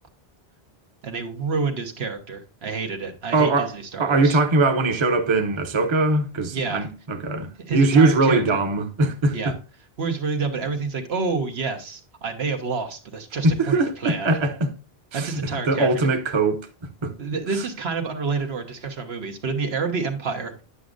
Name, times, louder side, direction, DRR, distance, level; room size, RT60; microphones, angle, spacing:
voice 1, 1.0-4.4 6.5-6.9 7.7-8.6 9.3-9.5 10.0-14.4 15.2-16.1 17.2-20.5, right 4 dB, 85° right, 1.4 m, -28 dB
voice 2, 3.3-3.7 4.0-9.5 13.4-14.7 15.1-15.3 15.7-16.6 17.0-17.1, right 2 dB, 30° right, 0.7 m, -21 dB
9.7 x 6.1 x 2.5 m
omnidirectional pair, 1.0 m